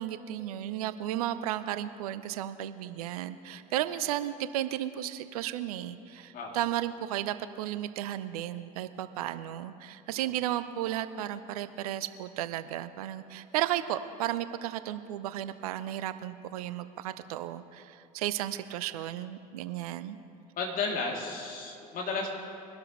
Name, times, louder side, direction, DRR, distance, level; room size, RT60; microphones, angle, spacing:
voice 1, 0.0-20.2, right 12 dB, 70° right, 13 dB, 0.6 m, -34 dB
voice 2, 20.5-22.3, left 4 dB, 45° left, -1 dB, 2.8 m, -33 dB
23.0 x 12.5 x 3.1 m, 2.5 s
figure-of-eight pair, 65°, 20 cm